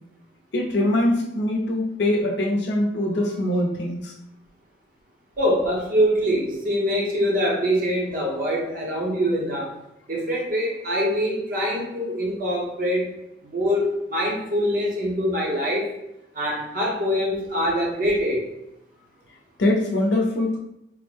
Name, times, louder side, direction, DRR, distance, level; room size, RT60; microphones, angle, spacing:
voice 1, 0.5-4.1 19.6-20.6, left 1 dB, 70° left, 1 dB, 0.6 m, -23 dB
voice 2, 5.4-9.7 10.1-13.1 13.4-15.9 16.3-18.4, equal, 50° right, -2 dB, 0.9 m, -24 dB
3.7 x 2.1 x 3.2 m, 0.82 s
head